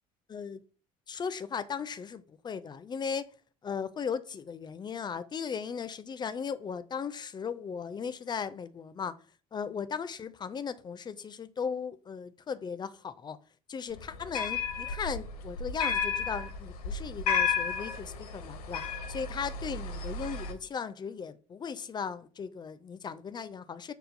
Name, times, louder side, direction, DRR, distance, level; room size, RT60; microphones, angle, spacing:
voice 1, 0.3-0.6 1.1-3.3 3.6-9.1 9.5-13.4 13.7-18.8 19.1-23.9, left 6 dB, 20° left, 0.4 m, -37 dB
sound 1, 14.0-20.5, left 5 dB, 75° left, 0.6 m, -33 dB
6.3 x 2.2 x 2.5 m
figure-of-eight pair, 55°, 19 cm